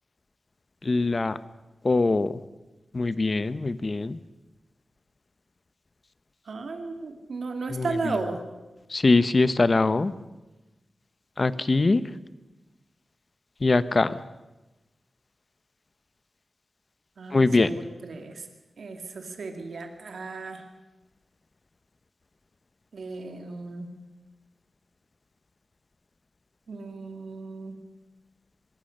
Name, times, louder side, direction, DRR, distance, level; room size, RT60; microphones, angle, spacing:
voice 1, 0.8-1.4 1.8-2.4 2.9-4.2 7.7-8.2 8.9-10.1 11.4-12.0 13.6-14.2 17.3-17.7, left 3 dB, 35° left, 15 dB, 0.8 m, -22 dB
voice 2, 6.5-8.4 17.2-18.5 18.8-20.6 22.9-23.9 26.7-27.7, right 3 dB, 75° right, 5 dB, 2.6 m, -35 dB
24.5 x 22.0 x 6.6 m, 1.1 s
wide cardioid pair, 150°, 0 cm